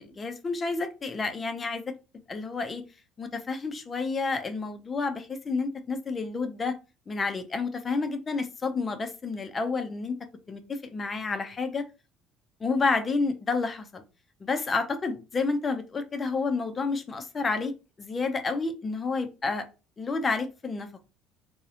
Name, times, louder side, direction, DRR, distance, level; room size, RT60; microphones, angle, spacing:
voice 1, 0.0-1.8 2.3-2.8 3.2-6.7 7.1-10.1 10.5-11.8 12.6-14.0 14.4-17.7 18.0-19.6 20.0-21.1, left 4 dB, 20° left, 8 dB, 0.3 m, -30 dB
2.6 x 2.0 x 2.6 m, 0.30 s
cardioid pair, 155°, 0 cm